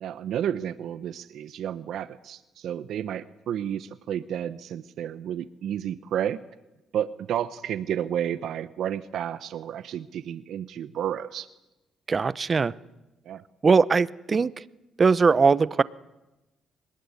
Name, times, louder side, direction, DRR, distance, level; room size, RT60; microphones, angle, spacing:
voice 1, 0.0-6.4 6.9-11.5 13.3-13.4, right 10 dB, 75° right, 0.8 m, -31 dB
voice 2, 12.1-12.7 13.6-14.6 15.0-15.8, right 5 dB, 35° right, 0.8 m, -20 dB
23.0 x 20.0 x 9.6 m
cardioid pair, 90°, 0 cm